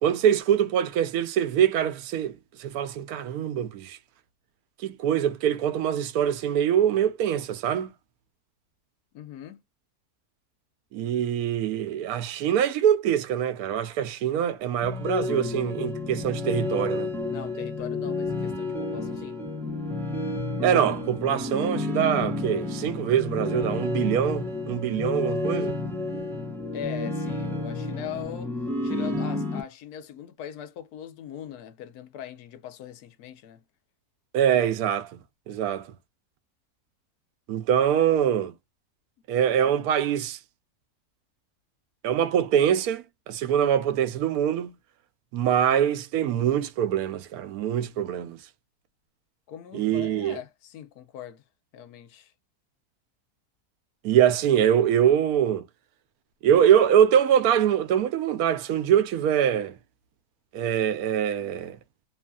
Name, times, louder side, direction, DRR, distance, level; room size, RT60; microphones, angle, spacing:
voice 1, 0.0-4.0 4.8-7.9 10.9-17.1 20.6-25.8 34.3-35.2 35.5-35.9 37.5-38.5 39.3-40.4 42.0-44.7 45.3-48.4 49.7-50.4 54.0-55.6 56.4-59.8 60.5-61.8, right 9 dB, 80° right, 1.0 m, -24 dB
voice 2, 9.1-9.6 17.3-19.4 26.7-28.5 28.8-33.6 49.5-51.4 51.7-52.3, left 9 dB, 80° left, 1.1 m, -40 dB
sound 1, 14.8-29.6, left 2 dB, 5° left, 0.3 m, -30 dB
3.1 x 2.5 x 2.2 m
omnidirectional pair, 1.6 m